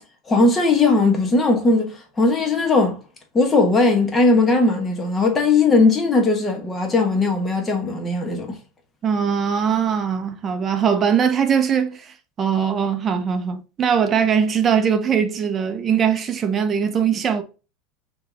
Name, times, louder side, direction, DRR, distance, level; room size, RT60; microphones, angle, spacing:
voice 1, 0.3-3.0 3.3-8.6, left 3 dB, 15° left, 1.0 m, -18 dB
voice 2, 9.0-17.4, right 7 dB, 25° right, 0.6 m, -21 dB
3.9 x 2.9 x 3.4 m
supercardioid pair, 150°, 0 cm